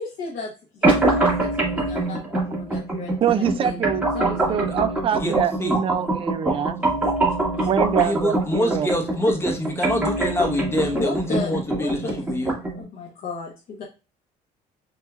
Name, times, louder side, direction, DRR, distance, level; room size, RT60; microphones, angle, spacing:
voice 1, 0.0-4.6 7.0-7.7 10.9-12.2 12.7-13.8, left 4 dB, 60° left, -4 dB, 1.1 m, -35 dB
sound 1, 0.8-12.8, right 2 dB, 10° right, 1.8 m, -24 dB
voice 2, 3.2-6.8 7.7-8.9, right 8 dB, 35° right, 12 dB, 0.4 m, -24 dB
voice 3, 8.0-12.5, equal, 15° left, 2 dB, 1.2 m, -25 dB
5.8 x 2.7 x 2.4 m, 0.30 s
cardioid pair, 110°, 17 cm